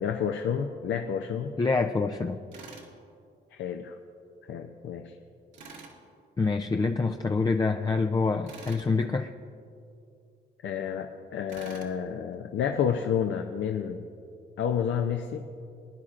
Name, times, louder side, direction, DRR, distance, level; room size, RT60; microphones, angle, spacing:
voice 1, 0.0-1.5 3.5-3.9 4.5-5.1 10.6-14.1 14.6-15.4, left 8 dB, 70° left, 4 dB, 0.6 m, -30 dB
voice 2, 1.6-2.4 6.4-9.3, left 4 dB, 20° left, 5 dB, 0.4 m, -26 dB
Tools, 2.5-2.9 5.5-6.0 8.5-8.9 11.5-11.9, right 4 dB, 70° right, 1.7 m, -46 dB
21.5 x 10.0 x 2.5 m, 2.4 s
cardioid pair, 90°, 20 cm